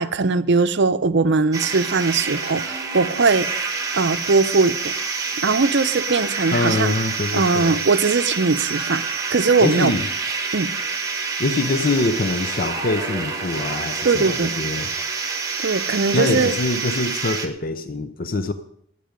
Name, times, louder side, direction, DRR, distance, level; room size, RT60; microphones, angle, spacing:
voice 1, 0.0-3.5 3.9-4.9 5.4-6.9 7.3-9.0 9.3-9.9 10.5-10.7 14.0-14.5 15.6-16.5, right 4 dB, 55° right, 0.6 m, -20 dB
sound 1, 1.5-17.5, right 4 dB, 15° right, 1.3 m, -27 dB
voice 2, 6.5-7.8 9.6-10.1 11.4-14.9 16.1-18.5, left 2 dB, 45° left, 0.6 m, -24 dB
20.5 x 8.4 x 5.2 m
head